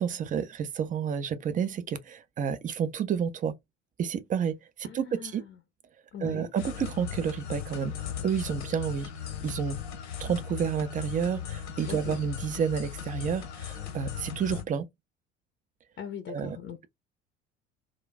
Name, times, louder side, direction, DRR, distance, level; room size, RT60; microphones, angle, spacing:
voice 1, 0.0-3.5 4.0-5.4 6.2-8.0 8.2-9.1 9.4-9.8 10.2-14.9 16.3-16.6, right 7 dB, 25° right, 0.5 m, -30 dB
voice 2, 4.8-5.3 6.1-6.5 11.9-12.2 16.0-16.9, left 8 dB, 35° left, 0.7 m, -40 dB
sound 1, 6.6-14.6, left 9 dB, 70° left, 1.0 m, -38 dB
2.3 x 2.2 x 3.9 m
figure-of-eight pair, 65°, 35 cm